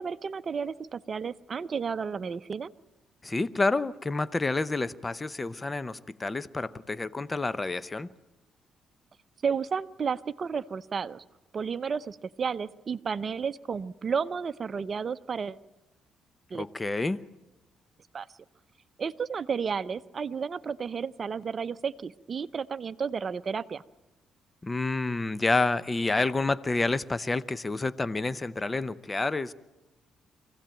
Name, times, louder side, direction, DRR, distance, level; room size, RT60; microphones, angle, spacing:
voice 1, 0.0-2.7 9.4-11.2 11.5-15.6 16.5-16.7 18.1-18.3 19.0-23.8, right 6 dB, 45° right, 0.7 m, -32 dB
voice 2, 3.2-8.1 16.5-17.2 24.6-29.5, left 3 dB, 20° left, 0.7 m, -29 dB
25.0 x 16.5 x 9.0 m
cardioid pair, 90°, 0 cm